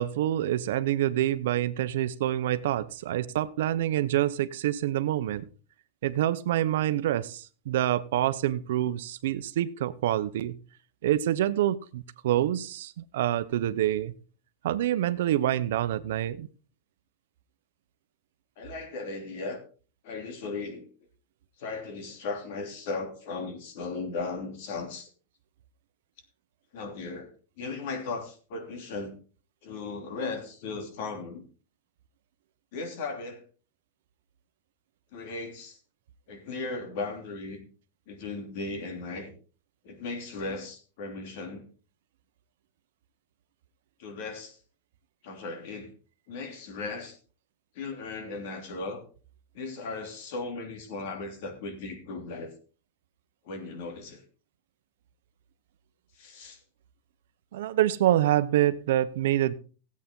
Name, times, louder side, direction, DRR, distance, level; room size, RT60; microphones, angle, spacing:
voice 1, 0.0-5.5 6.0-10.6 11.0-14.1 14.6-16.5 57.5-59.5, right 12 dB, 75° right, 0.9 m, -26 dB
voice 2, 18.6-19.6 20.0-20.9 21.6-25.1 26.7-27.3 27.6-29.1 29.6-31.4 32.7-33.4 35.1-35.8 36.3-37.6 38.1-39.3 39.8-41.7 44.0-44.6 45.2-45.9 46.3-47.2 47.7-49.0 49.5-52.5 53.4-54.2 56.1-56.6, left 3 dB, 60° left, 3.1 m, -37 dB
16.5 x 8.5 x 3.8 m
supercardioid pair, 160°, 0 cm